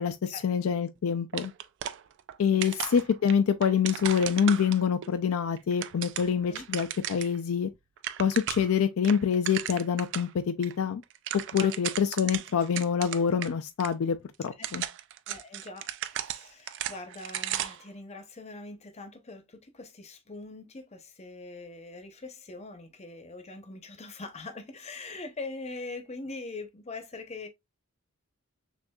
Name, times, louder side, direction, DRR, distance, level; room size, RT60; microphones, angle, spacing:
voice 1, 0.0-1.5 2.4-7.7 8.2-11.0 11.3-14.2 14.4-14.8, left 7 dB, 65° left, 0.4 m, -26 dB
sound 1, 1.3-2.4 2.6-5.1 5.6-7.4 7.7-7.8 8.0-8.8 9.0-10.3 10.6-10.7 11.0-13.5 13.8-13.9 14.5-17.9, right 11 dB, 55° right, 0.3 m, -35 dB
voice 2, 15.3-27.5, left 3 dB, 30° left, 0.7 m, -42 dB
6.2 x 2.5 x 2.3 m
head